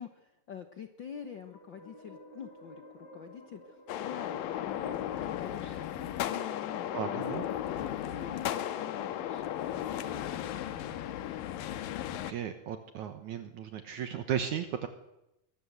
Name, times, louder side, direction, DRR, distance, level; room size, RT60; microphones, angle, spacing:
voice 1, 0.0-11.4, left 7 dB, 75° left, 7 dB, 1.1 m, -46 dB
sound 1, 1.0-10.4, equal, 30° left, 3.0 m, -52 dB
sound 2, 3.9-12.3, left 12 dB, 90° left, 2.8 m, -35 dB
voice 2, 6.9-7.4 12.3-14.9, right 9 dB, 65° right, 8 dB, 2.5 m, -35 dB
23.5 x 19.0 x 8.1 m, 0.89 s
omnidirectional pair, 3.9 m